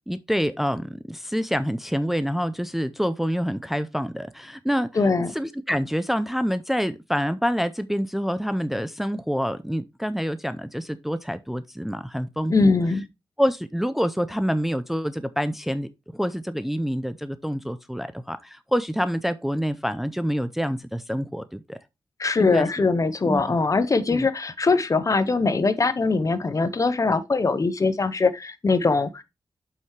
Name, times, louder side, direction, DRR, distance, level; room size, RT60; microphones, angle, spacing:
voice 1, 0.1-4.9 5.3-12.7 13.4-21.8 22.4-22.9 23.3-23.6 24.1-24.3, equal, 5° right, 0.5 m, -27 dB
voice 2, 4.9-5.3 12.5-13.0 22.2-29.2, left 3 dB, 40° left, 0.7 m, -22 dB
7.6 x 5.7 x 3.1 m
wide cardioid pair, 105°, 9 cm